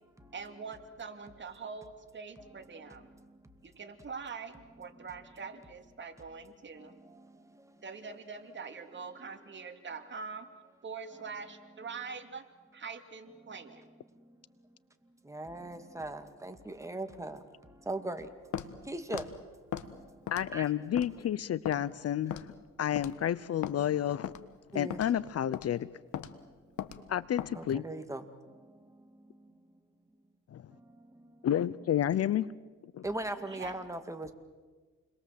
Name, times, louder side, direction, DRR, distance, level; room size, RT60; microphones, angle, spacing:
voice 1, 0.3-3.1 3.6-6.9 7.8-10.5 10.8-12.4 12.7-13.9 33.5-33.8, right 5 dB, 40° right, 6 dB, 2.7 m, -44 dB
voice 2, 15.3-17.4 17.9-18.3 18.9-19.2 20.5-20.7 24.7-25.0 27.5-28.2 33.0-34.3, right 2 dB, 10° right, 7 dB, 2.4 m, -38 dB
Walk footsteps, 18.5-18.7 19.1-19.3 19.7-19.9 20.3-20.6 21.0-21.1 21.6-21.8 22.3-22.5 23.0-23.2 23.6-23.8 24.2-24.4 24.9-25.1 25.5-25.7 26.1-26.3 26.8-27.0 27.4-27.5, left 10 dB, 70° left, 1.5 m, -38 dB
voice 3, 20.3-22.4 22.8-24.3 24.7-25.9 27.1-27.8 30.5-30.6 31.4-32.5 32.9-33.0, left 10 dB, 55° left, 19 dB, 0.7 m, -30 dB
29.0 x 22.0 x 7.8 m, 1.4 s
cardioid pair, 90°, 30 cm